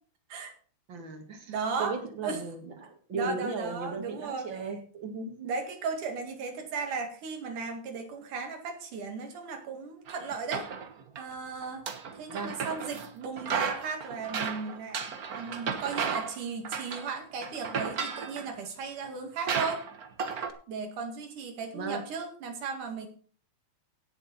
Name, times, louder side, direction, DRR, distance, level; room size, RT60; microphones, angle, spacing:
voice 1, 0.9-5.5 12.3-12.5 21.7-22.0, right 4 dB, 40° right, 5 dB, 2.4 m, -36 dB
voice 2, 1.5-2.0 2.2-2.4 3.1-4.6 5.4-10.7 11.2-11.9 12.2-15.0 15.4-19.8 20.7-23.1, right 5 dB, 85° right, 5 dB, 3.6 m, -36 dB
sound 1, 10.1-11.2 11.6-13.1 13.4-16.4 16.6-17.1 17.4-18.5 19.0-19.1 19.5-20.5, right 6 dB, 70° right, 0.8 m, -34 dB
17.0 x 7.1 x 4.2 m, 0.43 s
omnidirectional pair, 3.5 m